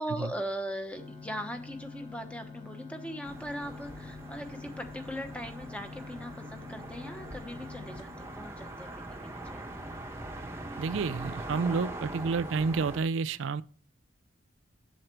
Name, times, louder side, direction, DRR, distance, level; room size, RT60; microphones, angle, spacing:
voice 1, 0.0-9.7, equal, 5° left, 1.0 m, -39 dB
sound 1, 0.9-9.0, left 4 dB, 25° left, 1.3 m, -47 dB
sound 2, 3.2-13.0, right 1 dB, 15° right, 1.0 m, -42 dB
voice 2, 10.8-13.6, right 4 dB, 75° right, 0.4 m, -30 dB
7.9 x 7.3 x 4.5 m
head